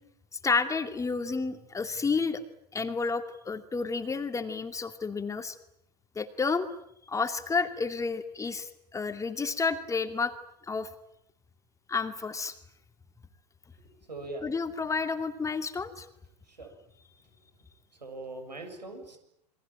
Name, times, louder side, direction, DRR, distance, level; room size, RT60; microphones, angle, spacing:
voice 1, 0.4-2.4 2.7-5.6 6.2-6.7 7.1-10.3 10.7-10.9 11.9-12.5 14.4-16.1, left 4 dB, 15° left, 8 dB, 2.4 m, -30 dB
voice 2, 14.1-14.4 16.6-16.7 18.0-19.2, right 2 dB, 90° right, 6 dB, 7.2 m, -40 dB
28.5 x 23.0 x 9.1 m, 0.73 s
hypercardioid pair, 95°, 21 cm